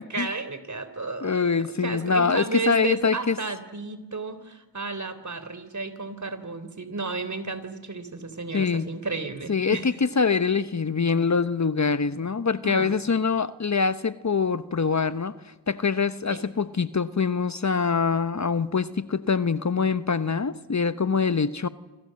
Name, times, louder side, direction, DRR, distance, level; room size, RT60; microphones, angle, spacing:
voice 1, 0.0-1.5 1.8-9.9 12.6-13.0 16.3-16.4, right 3 dB, 40° right, 12 dB, 3.5 m, -33 dB
voice 2, 1.2-3.4 8.5-8.9 9.5-21.7, left 5 dB, 40° left, 13 dB, 1.1 m, -24 dB
28.0 x 26.5 x 7.7 m, 1.2 s
cardioid pair, 50°, 43 cm